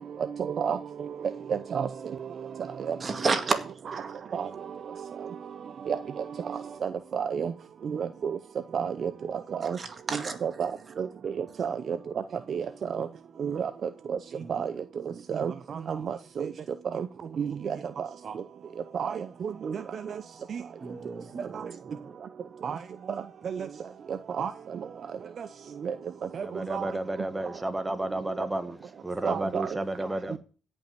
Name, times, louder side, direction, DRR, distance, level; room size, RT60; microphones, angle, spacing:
voice 1, 1.5-1.9 2.9-3.0 4.3-4.5 5.9-6.0 7.1-7.5 7.9-8.4 8.7-9.1 9.6-9.8 10.4-10.7 11.0-11.1 11.4-12.0 12.5-12.6 12.9-13.1 13.4-13.7 14.5-14.7 15.3-15.5 15.9-16.0 16.4-16.5 17.0-17.1 17.4-17.8 19.0-19.1 19.4-19.8 22.6-22.8 24.4-24.5 25.8-25.9 26.7-26.9 29.2-29.7, right 7 dB, 55° right, 0.7 m, -29 dB
voice 2, 3.0-3.7 3.9-4.0 9.6-10.6 11.6-11.7 14.4-14.7 15.1-15.2 20.8-22.1, right 4 dB, 40° right, 2.0 m, -32 dB
voice 3, 26.4-28.8 29.0-30.4, right 1 dB, 15° right, 1.3 m, -32 dB
16.0 x 5.6 x 8.0 m
cardioid pair, 90°, 0 cm